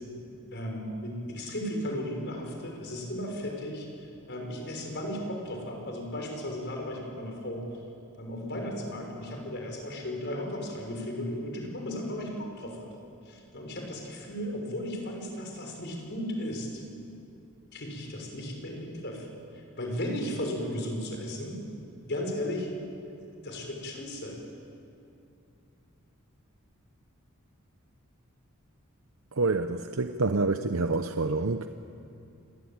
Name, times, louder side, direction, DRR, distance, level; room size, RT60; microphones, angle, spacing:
voice 1, 0.5-3.9 4.3-7.6 8.2-12.9 13.2-16.8 17.7-19.3 19.5-21.6 22.0-22.7 23.1-24.4, left 1 dB, 55° left, 1 dB, 6.2 m, -35 dB
voice 2, 29.3-31.7, right 3 dB, 70° right, 8 dB, 0.8 m, -27 dB
28.0 x 22.0 x 8.9 m, 2.6 s
head